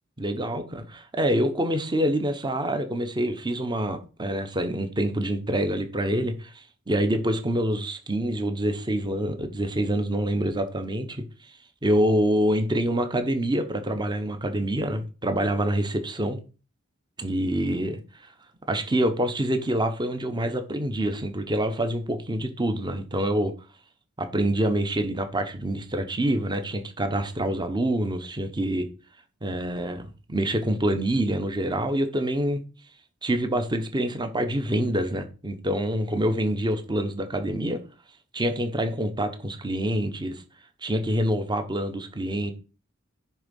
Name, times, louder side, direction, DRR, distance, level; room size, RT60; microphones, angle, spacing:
voice 1, 0.2-11.3 11.8-16.4 17.2-18.0 18.7-23.5 24.2-28.9 29.4-32.6 33.2-37.8 38.3-40.4 40.8-42.5, right 1 dB, 20° right, 0.9 m, -26 dB
10.0 x 3.7 x 5.3 m
head